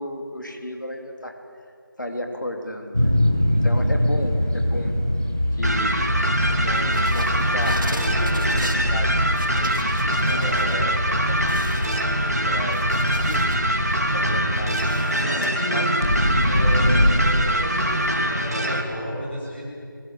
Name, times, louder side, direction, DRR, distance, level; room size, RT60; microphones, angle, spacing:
voice 1, 0.0-1.4 2.0-3.1 3.6-4.9 5.5-6.0 6.5-12.1 12.4-13.6 14.1-15.9, left 1 dB, 60° left, 4 dB, 3.5 m, -34 dB
sound 1, 2.9-15.0 16.0-17.1, equal, 10° right, 0.7 m, -24 dB
sound 2, 5.6-18.8, right 1 dB, 45° right, 2.8 m, -24 dB
sound 3, 6.8-10.7 11.1-11.2 11.5-13.7 14.1-15.5, right 1 dB, 65° right, 3.5 m, -38 dB
voice 2, 10.3-10.7 15.2-15.9 16.4-19.8, equal, 30° left, -5 dB, 7.7 m, -31 dB
30.0 x 22.0 x 7.6 m, 2.4 s
figure-of-eight pair, 175°, 11 cm